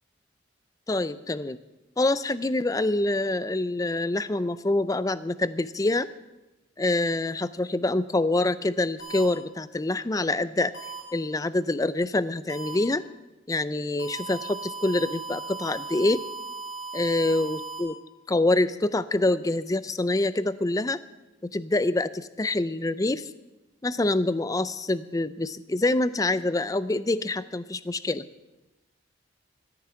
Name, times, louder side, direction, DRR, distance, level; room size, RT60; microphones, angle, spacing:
voice 1, 0.9-1.6 2.0-6.1 6.8-10.7 11.1-13.0 13.5-16.2 16.9-18.0 18.3-21.0 21.4-23.3 23.8-28.2, left 2 dB, 15° left, 16 dB, 0.4 m, -26 dB
sound 1, 9.0-9.2 10.7-11.0 12.5-12.7 14.0-17.8, right 4 dB, 70° left, 4.0 m, -37 dB
14.5 x 9.8 x 7.0 m, 1.1 s
head